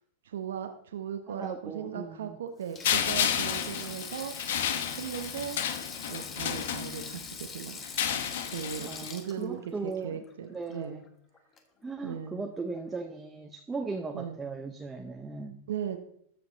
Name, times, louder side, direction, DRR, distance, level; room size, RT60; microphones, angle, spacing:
voice 1, 0.2-4.6 4.9-5.6 6.1-8.1 8.4-11.0 12.0-12.4 14.1-14.4 15.7-16.0, right 8 dB, 85° right, 7 dB, 0.8 m, -38 dB
voice 2, 1.3-2.4 8.8-10.2 10.5-11.0 11.8-15.6, right 4 dB, 15° right, 4 dB, 0.7 m, -38 dB
Sink (filling or washing), 2.6-11.1 11.3-11.6 12.8-13.0, left 5 dB, 25° left, 1.3 m, -43 dB
sound 1, 2.8-7.3 7.8-9.1, left 9 dB, 75° left, 0.9 m, -31 dB
13.5 x 5.1 x 3.9 m, 0.70 s
hypercardioid pair, 125°, 0 cm